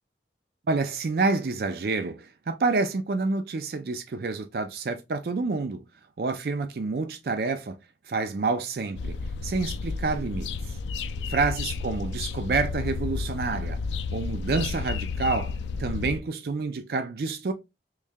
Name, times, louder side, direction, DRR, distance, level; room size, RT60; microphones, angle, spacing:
voice 1, 0.7-5.8 6.2-7.8 8.1-9.1 9.4-10.5 11.3-13.8 14.1-17.5, right 3 dB, 55° right, 0.4 m, -28 dB
sound 1, 9.0-16.2, left 4 dB, 85° left, 0.3 m, -32 dB
3.1 x 2.7 x 3.5 m
head